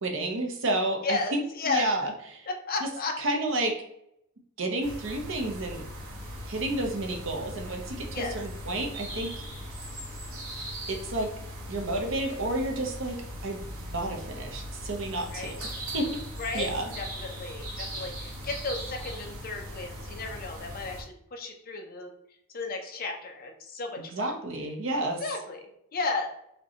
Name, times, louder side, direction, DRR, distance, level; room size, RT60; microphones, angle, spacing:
voice 1, 0.0-2.5 3.2-3.7 4.6-5.8 6.5-9.3 10.9-11.3 11.7-13.2 13.4-13.6 13.9-15.6 15.9-16.1 16.5-16.9 24.1-25.2, right 2 dB, 60° right, 2 dB, 0.7 m, -30 dB
voice 2, 1.0-1.8 2.5-3.2 8.1-8.4 15.3-15.5 16.4-16.7 17.0-22.1 22.5-24.3 25.2-26.3, left 3 dB, 45° left, 3 dB, 0.6 m, -34 dB
sound 1, 4.8-21.0, equal, 90° right, 1.1 m, -39 dB
5.1 x 2.2 x 2.8 m, 0.76 s
head